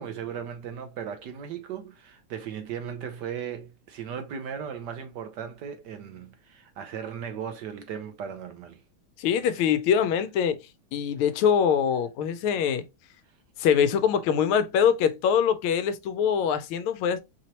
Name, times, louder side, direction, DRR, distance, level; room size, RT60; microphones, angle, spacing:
voice 1, 0.0-8.8, right 8 dB, 70° right, 1.1 m, -37 dB
voice 2, 9.2-10.6 10.9-12.8 13.6-17.2, left 8 dB, 85° left, 1.4 m, -23 dB
4.8 x 2.9 x 2.9 m
omnidirectional pair, 2.3 m